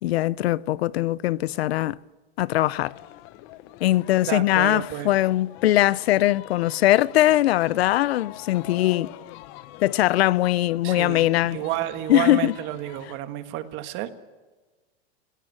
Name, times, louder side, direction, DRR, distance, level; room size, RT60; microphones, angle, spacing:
voice 1, 0.0-2.0 2.4-2.9 3.8-9.1 9.8-11.6 12.1-12.5, left 15 dB, 70° left, 0.6 m, -21 dB
sound 1, 2.6-13.2, left 15 dB, 35° left, 0.9 m, -45 dB
voice 2, 4.2-5.1 10.8-14.1, right 13 dB, 35° right, 1.6 m, -30 dB
19.5 x 17.5 x 8.6 m
supercardioid pair, 150°, 32 cm